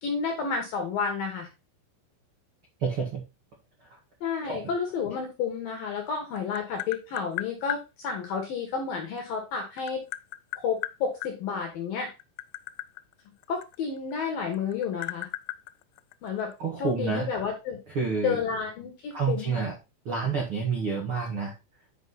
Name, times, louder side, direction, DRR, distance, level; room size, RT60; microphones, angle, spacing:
voice 1, 0.0-1.5 4.2-10.0 10.6-12.1 13.5-15.3 16.2-16.5 16.8-17.8 18.2-19.6, left 6 dB, 65° left, 2 dB, 2.3 m, -31 dB
voice 2, 2.8-3.2 4.5-4.7 16.6-17.3 17.9-18.4 19.1-19.7 20.0-21.5, right 5 dB, 80° right, -1 dB, 1.2 m, -28 dB
Tap, 6.0-7.8 9.2-11.3 12.1-14.2 14.5-16.5, left 17 dB, 90° left, 2.7 m, -36 dB
9.2 x 4.8 x 4.1 m, 0.26 s
omnidirectional pair, 5.9 m